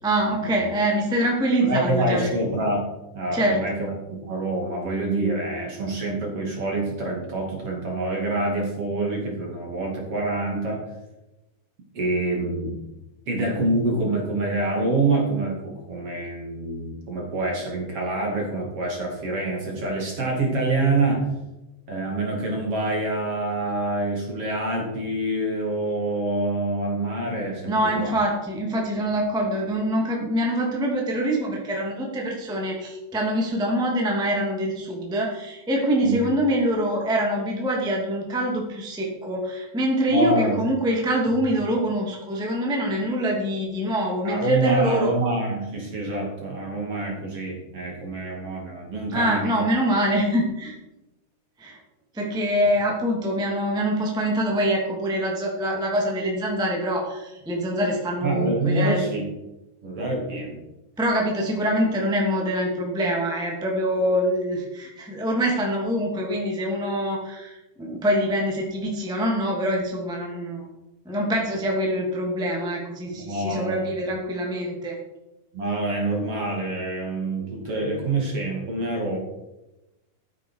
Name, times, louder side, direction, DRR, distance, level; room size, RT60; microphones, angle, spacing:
voice 1, 0.0-2.3 3.3-3.6 27.6-45.1 49.1-50.7 51.6-51.8 52.1-59.0 61.0-70.6 71.0-75.0, right 1 dB, ahead, -1 dB, 1.8 m, -24 dB
voice 2, 1.6-2.9 3.1-10.8 11.9-12.8 13.3-21.3 21.9-28.2 36.0-36.2 40.1-40.6 41.3-41.4 44.2-49.5 58.2-59.2 59.8-60.6 73.1-73.9 75.5-79.2, right 2 dB, 40° right, -1 dB, 3.2 m, -26 dB
14.0 x 9.6 x 4.8 m, 0.97 s
omnidirectional pair, 4.5 m